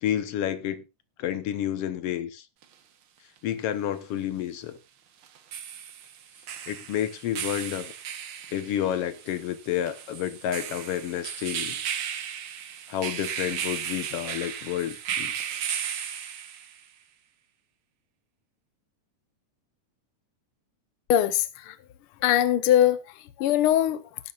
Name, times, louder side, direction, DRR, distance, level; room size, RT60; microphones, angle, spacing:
voice 1, 0.0-0.8 1.2-2.5 3.4-4.8 6.7-7.9 8.5-11.8 12.9-15.3, left 11 dB, 60° left, 1.7 m, -30 dB
sound 1, 2.6-2.7 5.2-16.8, right 8 dB, 60° right, 1.5 m, -35 dB
voice 2, 21.1-21.7 22.2-23.0 23.4-24.0, left 11 dB, 90° left, 1.2 m, -21 dB
19.0 x 11.0 x 2.5 m
omnidirectional pair, 3.7 m